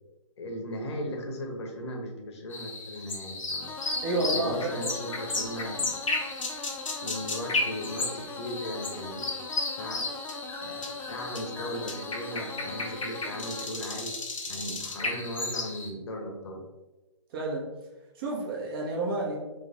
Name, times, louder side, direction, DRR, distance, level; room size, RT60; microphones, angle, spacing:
voice 1, 0.4-3.7 4.4-6.0 7.0-9.3 9.8-10.1 10.6-14.2 14.5-16.6, equal, 60° left, 3 dB, 1.0 m, -37 dB
sound 1, 2.5-15.9, left 3 dB, 80° left, 1.0 m, -34 dB
sound 2, 3.6-13.6, left 3 dB, 10° left, 0.4 m, -41 dB
voice 2, 4.0-4.8 17.3-17.7 18.1-19.4, right 2 dB, 45° right, -2 dB, 1.4 m, -30 dB
3.5 x 3.1 x 4.2 m, 1.1 s
hypercardioid pair, 135°, 17 cm